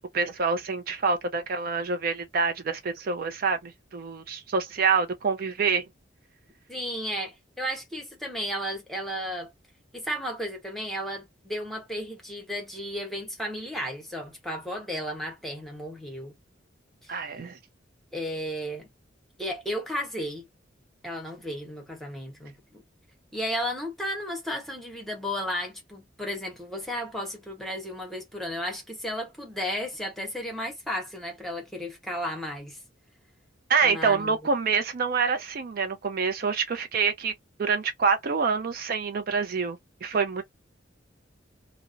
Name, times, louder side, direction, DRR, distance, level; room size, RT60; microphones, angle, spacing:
voice 1, 0.0-5.8 17.1-17.6 33.7-37.3 37.6-40.4, right 5 dB, 50° right, 0.4 m, -26 dB
voice 2, 6.7-9.5 9.9-16.4 17.0-17.2 18.1-18.9 19.4-20.5 21.0-22.8 23.3-32.8 33.8-34.4, equal, ahead, 0.9 m, -34 dB
2.5 x 2.0 x 2.5 m
head